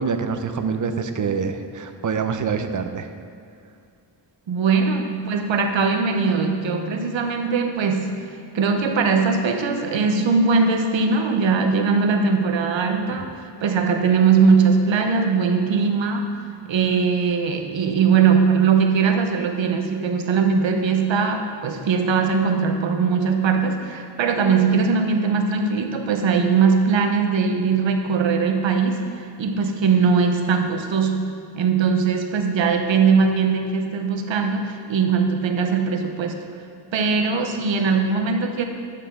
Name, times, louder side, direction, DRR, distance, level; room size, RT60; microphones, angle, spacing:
voice 1, 0.0-3.1, right 5 dB, 45° right, 7 dB, 0.7 m, -25 dB
voice 2, 4.5-8.3 8.5-13.3 13.6-16.3 16.7-31.3 31.5-36.4 36.9-38.6, right 5 dB, 85° right, 5 dB, 0.9 m, -20 dB
11.5 x 6.7 x 3.7 m, 2.4 s
wide cardioid pair, 85°, 44 cm